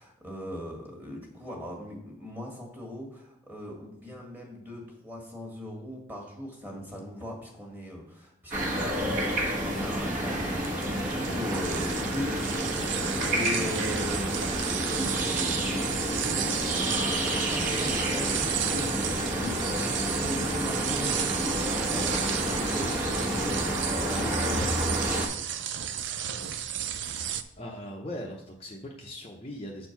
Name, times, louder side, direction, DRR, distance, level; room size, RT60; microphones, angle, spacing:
voice 1, 0.0-25.4, left 1 dB, 10° right, -1 dB, 1.6 m, -39 dB
sound 1, 8.5-25.3, equal, 40° right, 1.3 m, -29 dB
sound 2, 10.6-27.4, right 9 dB, 60° right, 0.5 m, -33 dB
voice 2, 27.6-29.9, left 1 dB, 30° left, -1 dB, 0.7 m, -39 dB
7.5 x 4.5 x 5.7 m, 0.77 s
head